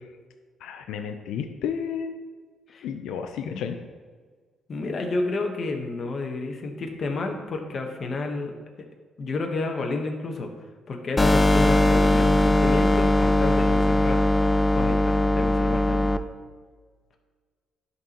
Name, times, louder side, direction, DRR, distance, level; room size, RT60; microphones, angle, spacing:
voice 1, 0.6-2.1 2.8-3.8, left 7 dB, 85° left, 6 dB, 0.4 m, -32 dB
voice 2, 4.7-8.9 9.2-10.5 10.9-14.2 14.7-16.1, left 3 dB, 50° left, 3 dB, 1.0 m, -30 dB
sound 1, 11.2-16.2, left 1 dB, 20° left, 0.4 m, -20 dB
11.0 x 4.1 x 2.9 m, 1.5 s
cardioid pair, 90°, 0 cm